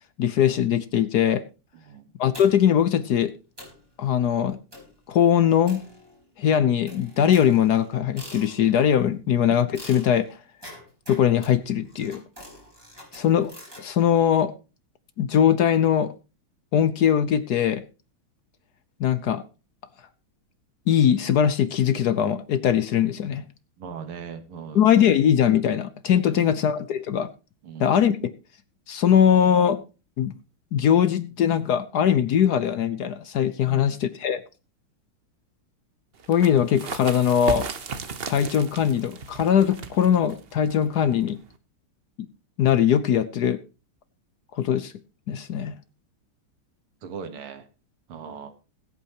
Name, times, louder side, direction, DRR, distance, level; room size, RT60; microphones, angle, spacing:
voice 1, 0.2-1.4 2.2-3.3 4.0-4.6 5.1-5.8 6.4-10.3 11.1-12.2 13.1-13.5 13.8-14.5 15.2-16.1 16.7-17.8 19.0-19.4 20.9-23.4 24.7-27.3 27.8-28.1 28.9-29.8 30.2-30.3 30.7-34.4 36.3-37.7 38.3-41.4 42.6-43.6 44.6-44.9 45.3-45.7, left 9 dB, 60° left, 13 dB, 1.1 m, -21 dB
sound 1, 2.3-2.8 3.2-3.3 3.6-3.9 4.7-5.0 5.7-6.4 6.9-8.9 9.7-13.9, equal, 10° right, 4.6 m, -45 dB
voice 2, 23.8-24.8 26.3-26.6 27.6-28.0 33.6-34.0 47.0-47.7 48.1-48.5, right 6 dB, 85° right, 9 dB, 2.3 m, -39 dB
sound 2, 36.2-41.6, right 5 dB, 50° right, 0.7 m, -36 dB
21.0 x 8.4 x 2.9 m, 0.31 s
omnidirectional pair, 2.3 m